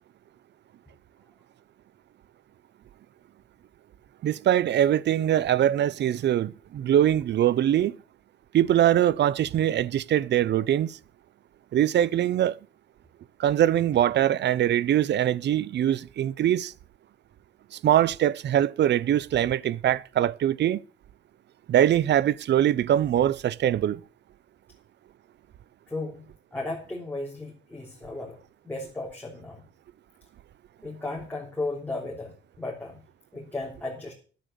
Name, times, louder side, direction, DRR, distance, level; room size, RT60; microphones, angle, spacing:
voice 1, 4.2-8.0 8.5-11.0 11.7-12.6 13.4-16.7 17.7-20.8 21.7-24.0, right 11 dB, 60° right, 0.6 m, -23 dB
voice 2, 25.9-26.2 26.5-28.4 28.6-29.6 30.8-33.0 33.3-34.1, left 2 dB, 10° left, 3.3 m, -35 dB
10.5 x 8.8 x 6.7 m
cardioid pair, 90°, 20 cm